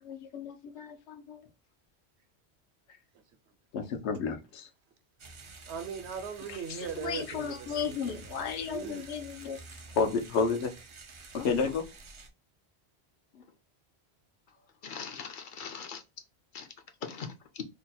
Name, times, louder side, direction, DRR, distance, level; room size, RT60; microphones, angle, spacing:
voice 1, 0.0-1.5 3.7-4.7 6.7-9.6 9.9-10.7 11.3-11.9 13.3-13.4, left 5 dB, 85° left, 0.9 m, -32 dB
sound 1, 5.2-12.3, right 3 dB, 50° right, 0.4 m, -49 dB
voice 2, 5.7-9.3 9.9-10.0, right 7 dB, 80° right, 0.9 m, -40 dB
voice 3, 14.8-16.0 16.5-16.7 17.0-17.6, left 6 dB, 60° left, 0.6 m, -41 dB
2.8 x 2.2 x 4.1 m
omnidirectional pair, 1.1 m